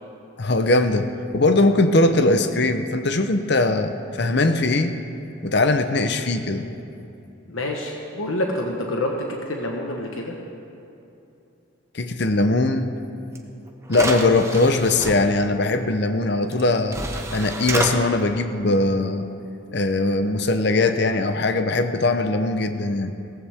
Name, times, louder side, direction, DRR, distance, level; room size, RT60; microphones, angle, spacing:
voice 1, 0.4-4.9 5.4-6.6 11.9-12.9 13.9-17.0 17.3-19.3 19.7-23.1, left 2 dB, 55° left, 8 dB, 0.7 m, -20 dB
voice 2, 7.5-10.4, left 1 dB, 80° left, 1 dB, 1.2 m, -27 dB
sound 1, 13.3-13.4 13.9-15.1 16.5-16.6 16.9-17.9, right 2 dB, 15° right, 0.8 m, -28 dB
17.0 x 15.0 x 3.5 m, 2.8 s
head